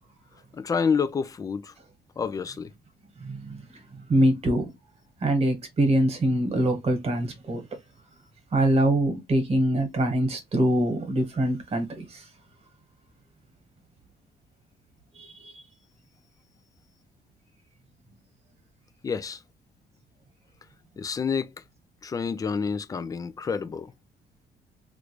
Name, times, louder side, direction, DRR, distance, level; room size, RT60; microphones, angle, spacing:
voice 1, 0.5-1.7 2.2-2.7 19.0-19.4 21.0-21.5 22.0-23.9, left 5 dB, 20° left, 0.4 m, -28 dB
voice 2, 3.2-3.8 4.1-4.7 5.2-7.6 8.5-12.3 15.1-15.6, right 1 dB, 35° right, 1.3 m, -24 dB
3.2 x 2.5 x 3.1 m
cardioid pair, 145°, 17 cm